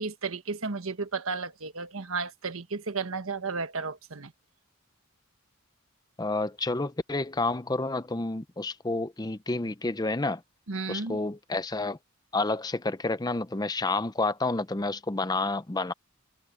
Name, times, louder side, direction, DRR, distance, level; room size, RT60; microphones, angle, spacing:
voice 1, 0.0-4.3 10.7-11.2, right 4 dB, 70° right, 1.4 m, -33 dB
voice 2, 6.2-10.4 10.9-12.0 12.3-15.9, left 2 dB, 20° left, 0.6 m, -29 dB
head